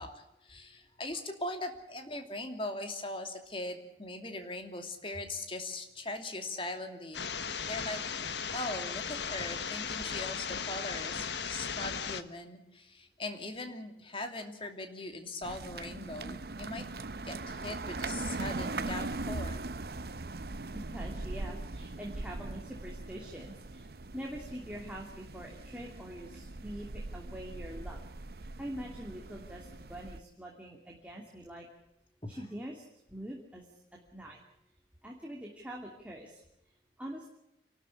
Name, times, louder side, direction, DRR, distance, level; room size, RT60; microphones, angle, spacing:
voice 1, 0.0-7.3 7.7-8.0 8.5-16.8 17.2-19.6 32.2-32.4, left 2 dB, 30° left, 5 dB, 2.8 m, -40 dB
sound 1, 7.1-12.2, left 6 dB, 85° left, 1.3 m, -36 dB
sound 2, 15.4-30.2, right 2 dB, 60° right, 0.8 m, -40 dB
voice 2, 20.7-28.0 28.4-31.7 32.3-32.8 33.1-33.7 33.9-34.4 35.0-36.4 37.0-37.3, right 1 dB, 10° right, -1 dB, 2.8 m, -44 dB
28.0 x 12.5 x 9.9 m, 0.85 s
head